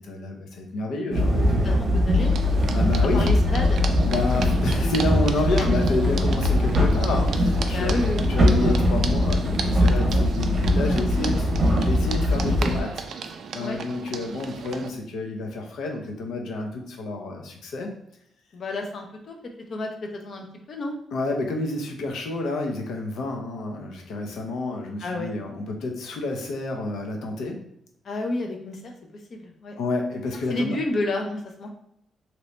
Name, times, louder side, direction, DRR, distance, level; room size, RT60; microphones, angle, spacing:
voice 1, 0.0-1.8 2.7-3.3 4.0-12.9 13.5-17.9 21.1-27.6 29.8-30.8, left 2 dB, 80° left, 2 dB, 0.7 m, -29 dB
sound 1, 1.1-12.8, left 1 dB, 20° right, 0.8 m, -21 dB
voice 2, 1.6-2.3 3.1-3.8 7.7-8.3 10.8-11.5 13.6-13.8 18.5-19.4 19.7-19.9 20.2-20.9 25.0-25.3 28.0-28.8 29.3-29.7 30.5-31.7, left 2 dB, 40° left, 3 dB, 0.6 m, -30 dB
sound 2, 2.2-14.9, right 5 dB, 55° right, 0.3 m, -36 dB
3.0 x 2.6 x 3.2 m, 0.76 s
cardioid pair, 170°, 0 cm